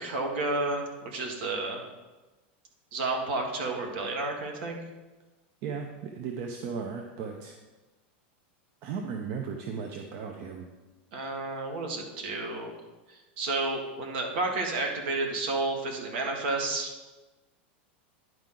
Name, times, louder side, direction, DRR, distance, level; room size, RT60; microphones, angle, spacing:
voice 1, 0.0-1.8 2.9-4.8 11.1-12.7 13.4-16.9, right 2 dB, 70° right, 2 dB, 1.7 m, -31 dB
voice 2, 5.6-7.5 8.8-10.7, right 6 dB, 55° right, 3 dB, 0.8 m, -36 dB
10.5 x 4.7 x 3.8 m, 1.1 s
supercardioid pair, 125°, 6 cm